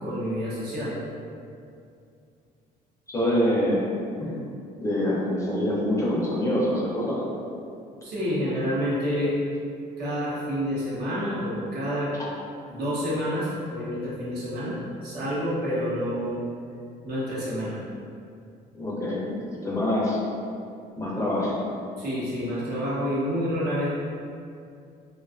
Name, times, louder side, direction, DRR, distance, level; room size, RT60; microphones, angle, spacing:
voice 1, 0.0-1.0 8.0-9.4 10.0-12.1 12.7-16.4 17.0-17.8 22.0-23.9, equal, 65° right, -8 dB, 0.9 m, -28 dB
voice 2, 3.1-3.8 4.2-4.3 4.8-7.2 18.7-20.2 21.0-21.6, left 1 dB, 15° left, -6 dB, 0.5 m, -25 dB
2.5 x 2.3 x 2.3 m, 2.4 s
cardioid pair, 110°, 17 cm